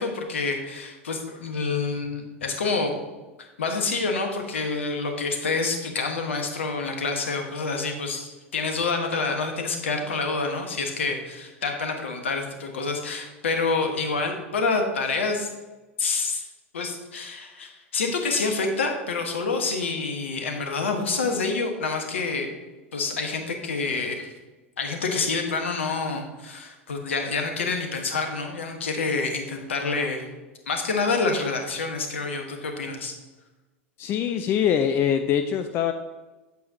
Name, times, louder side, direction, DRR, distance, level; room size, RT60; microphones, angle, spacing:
voice 1, 0.0-2.9 3.6-15.5 16.0-16.4 16.7-22.5 22.9-24.3 24.8-30.3 30.7-33.1, left 4 dB, 70° left, 4 dB, 1.3 m, -27 dB
voice 2, 34.0-35.9, left 8 dB, 35° left, 8 dB, 0.4 m, -23 dB
8.7 x 8.2 x 2.8 m, 1.1 s
figure-of-eight pair, 80°, 7 cm